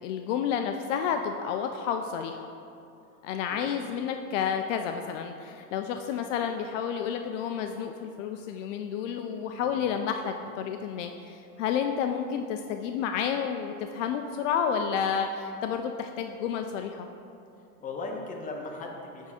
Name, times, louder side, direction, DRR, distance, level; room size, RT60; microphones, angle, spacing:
voice 1, 0.0-2.4 3.2-17.1, left 7 dB, 60° left, 5 dB, 0.5 m, -30 dB
voice 2, 9.6-10.0 17.8-19.3, left 3 dB, 20° left, 1 dB, 0.8 m, -38 dB
9.4 x 3.6 x 4.2 m, 2.7 s
supercardioid pair, 125°, 43 cm